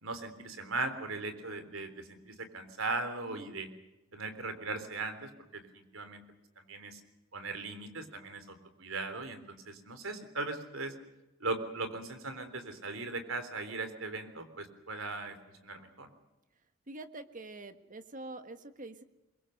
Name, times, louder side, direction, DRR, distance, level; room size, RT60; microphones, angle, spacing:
voice 1, 0.0-3.7 4.1-6.2 6.6-7.0 7.3-10.9 11.4-15.4 15.6-16.1, right 3 dB, 75° right, 9 dB, 3.7 m, -38 dB
voice 2, 16.9-19.0, right 2 dB, 40° right, 9 dB, 1.6 m, -45 dB
24.0 x 22.5 x 6.6 m, 1.0 s
head